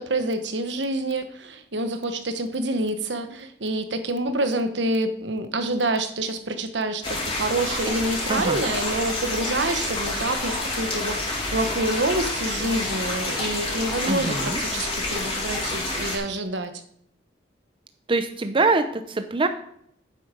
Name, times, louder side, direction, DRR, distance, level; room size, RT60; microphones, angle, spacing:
voice 1, 0.0-11.2 11.5-16.7, right 2 dB, 75° right, 8 dB, 1.2 m, -27 dB
sound 1, 7.0-16.2, left 2 dB, 30° left, 3.6 m, -28 dB
voice 2, 8.3-8.6 14.1-14.6 18.1-19.5, right 3 dB, 30° right, 9 dB, 0.6 m, -23 dB
9.6 x 7.8 x 5.1 m, 0.70 s
head